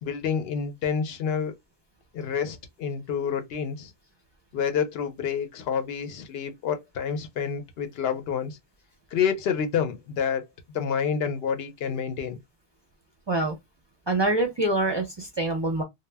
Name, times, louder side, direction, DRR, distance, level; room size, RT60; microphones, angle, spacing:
voice 1, 0.0-1.5 2.1-3.9 4.5-8.6 9.1-10.5 10.7-12.4, left 7 dB, 75° left, 0.8 m, -28 dB
voice 2, 14.1-15.8, right 2 dB, 35° right, 0.5 m, -25 dB
2.1 x 2.0 x 3.2 m
omnidirectional pair, 1.0 m